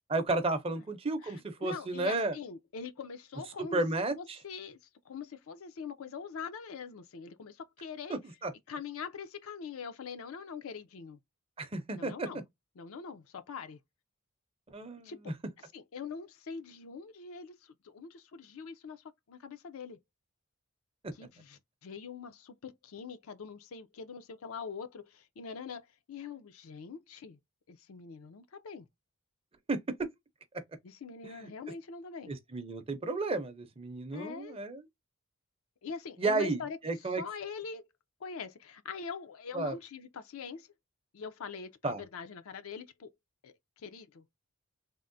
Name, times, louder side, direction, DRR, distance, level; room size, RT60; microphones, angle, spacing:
voice 1, 0.1-2.3 3.7-4.4 8.1-8.5 11.6-12.3 14.7-15.1 29.7-29.8 31.2-31.4 32.3-34.9 36.2-37.2 39.5-39.7 41.8-42.0, right 3 dB, 25° right, 0.5 m, -32 dB
voice 2, 1.2-3.8 4.2-8.2 8.7-11.2 11.9-12.4 12.8-13.8 15.0-15.3 15.6-20.0 21.1-27.4 27.7-28.9 30.8-32.4 34.1-34.6 35.8-37.9 38.2-40.7 41.1-43.1 43.4-44.2, left 6 dB, 80° left, 0.5 m, -43 dB
3.5 x 2.0 x 2.5 m
head